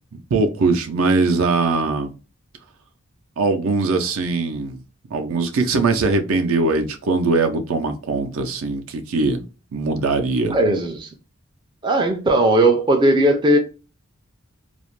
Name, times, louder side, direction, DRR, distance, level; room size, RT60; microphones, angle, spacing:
voice 1, 0.3-2.1 3.4-4.8 5.1-9.4 9.7-10.6, right 3 dB, 80° right, 0.5 m, -21 dB
voice 2, 10.5-11.1 11.8-13.6, right 1 dB, 20° right, 0.3 m, -17 dB
2.4 x 2.0 x 3.0 m
head